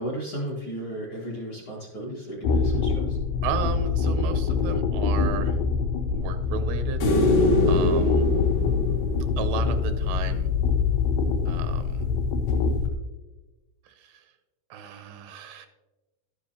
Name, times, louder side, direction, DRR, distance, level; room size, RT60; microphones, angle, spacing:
voice 1, 0.0-3.2, right 1 dB, 45° left, -4 dB, 1.9 m, -34 dB
sound 1, 2.4-12.9, left 5 dB, 85° left, 2.8 m, -25 dB
voice 2, 3.4-5.6 6.1-8.3 9.4-10.5 11.5-12.1 13.9-14.3 14.7-15.7, right 8 dB, 80° right, 8 dB, 2.7 m, -34 dB
sound 2, 7.0-10.3 12.9-13.0, left 1 dB, 60° left, 2.6 m, -24 dB
12.0 x 9.5 x 2.9 m, 1.1 s
omnidirectional pair, 4.9 m